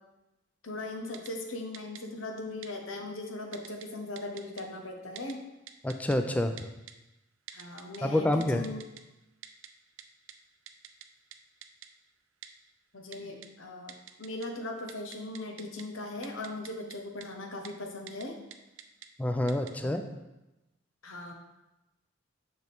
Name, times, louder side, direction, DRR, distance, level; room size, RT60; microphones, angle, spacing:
voice 1, 0.6-5.4 7.5-8.8 12.9-13.9 14.2-18.3 19.8-20.0 21.0-21.3, left 2 dB, 85° left, 3 dB, 1.0 m, -39 dB
Typing, 1.1-1.3 1.7-2.0 2.6-2.7 3.5-3.9 4.2-4.6 5.2-5.3 5.7-6.2 6.6-6.9 7.5-8.0 8.4-9.0 9.4-9.7 10.0-10.1 10.3-10.4 10.7-11.1 11.3-11.4 11.6-11.9 12.4-12.5 13.1-13.5 13.9-14.5 14.8-15.8 16.2-17.0 17.2-17.3 17.6-17.7 18.1-18.2 18.5-19.1 19.5-19.7, right 10 dB, 85° right, 0.5 m, -46 dB
voice 2, 5.8-6.6 8.0-8.6 19.2-20.0, left 1 dB, 5° left, 6 dB, 0.4 m, -27 dB
6.5 x 5.9 x 3.6 m, 0.99 s
head